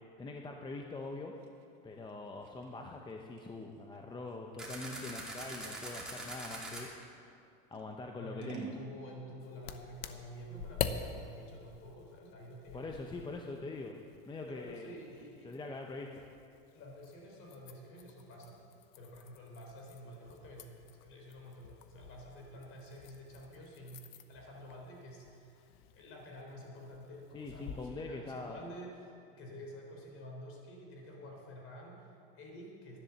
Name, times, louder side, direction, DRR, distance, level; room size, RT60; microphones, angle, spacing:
voice 1, 0.2-1.3 1.8-6.9 7.7-8.7 12.7-13.9 14.3-14.9 15.4-16.2 27.3-28.6, left 3 dB, 15° left, 2 dB, 0.8 m, -43 dB
Scissors, 1.0-7.2 7.7-8.9, right 7 dB, 50° right, 1.9 m, -51 dB
sound 1, 4.6-6.8, right 2 dB, ahead, 2.7 m, -43 dB
voice 2, 8.1-13.3 14.5-15.5 16.7-18.6 19.0-25.7 25.9-33.0, equal, 45° left, 0 dB, 3.8 m, -50 dB
sound 2, 9.4-27.9, left 9 dB, 70° left, 0.9 m, -46 dB
11.5 x 10.5 x 7.1 m, 2.5 s
supercardioid pair, 125°, 31 cm